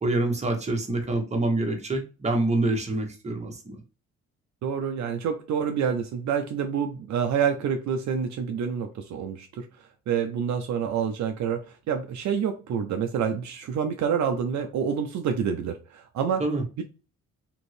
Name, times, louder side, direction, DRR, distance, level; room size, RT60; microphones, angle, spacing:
voice 1, 0.0-3.8 16.4-16.6, right 2 dB, 20° right, 2 dB, 1.0 m, -26 dB
voice 2, 4.6-16.4 16.8-16.9, right 7 dB, 65° right, 5 dB, 0.5 m, -28 dB
3.0 x 2.6 x 3.1 m, 0.33 s
cardioid pair, 90°, 30 cm